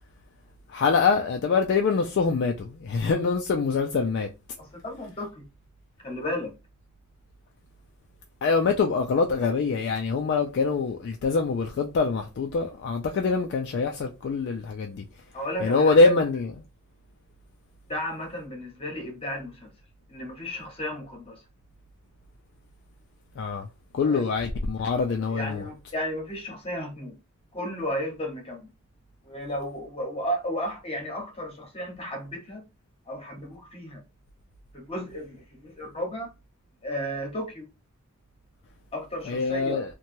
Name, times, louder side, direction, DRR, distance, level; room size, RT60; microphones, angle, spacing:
voice 1, 0.7-4.3 8.4-15.0 15.6-16.5 23.4-23.7 23.9-25.6 39.3-39.8, left 4 dB, 55° left, 0.3 m, -24 dB
voice 2, 4.6-5.4 6.0-6.5 15.3-16.1 17.9-19.7 20.1-21.4 24.0-24.3 25.2-27.2 27.5-28.7 29.2-32.6 33.1-34.0 34.7-36.3 36.8-37.7 38.9-39.8, equal, 30° left, 1.0 m, -34 dB
3.0 x 2.2 x 2.6 m
head